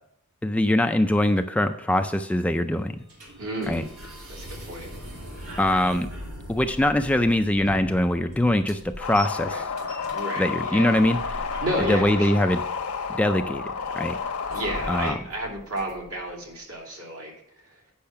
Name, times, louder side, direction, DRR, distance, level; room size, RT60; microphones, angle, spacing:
voice 1, 0.4-2.9 3.7-3.8 5.6-6.1 6.5-9.6 10.4-11.4 11.9-12.6 13.2-13.6 13.9-14.2 14.9-15.1, left 1 dB, 5° left, 7 dB, 0.3 m, -22 dB
sound 1, 2.3-16.3, equal, 85° right, 2.3 m, -41 dB
voice 2, 3.4-5.0 9.4-9.6 10.1-11.0 11.6-12.5 14.5-17.8, right 1 dB, 65° right, -1 dB, 2.7 m, -33 dB
sound 2, 9.0-15.1, left 5 dB, 80° left, 0.9 m, -31 dB
8.6 x 5.7 x 5.5 m, 0.70 s
head